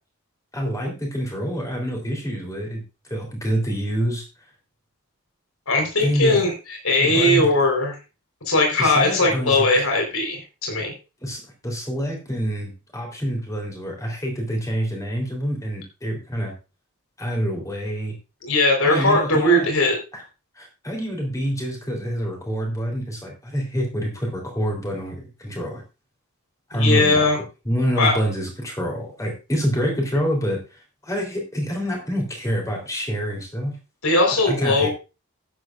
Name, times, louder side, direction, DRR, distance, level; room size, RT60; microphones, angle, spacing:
voice 1, 0.5-4.2 6.0-6.4 7.0-7.5 8.8-9.8 11.2-16.5 17.2-18.1 18.8-19.7 20.1-20.2 20.6-25.8 26.7-27.3 27.7-30.6 31.0-33.8 34.5-34.9, equal, 15° left, 0 dB, 3.9 m, -26 dB
voice 2, 5.7-8.0 8.5-10.9 18.4-20.0 26.7-27.4 28.0-28.2 34.0-34.9, left 2 dB, 80° left, 2 dB, 4.6 m, -19 dB
14.0 x 10.5 x 2.6 m, 0.30 s
head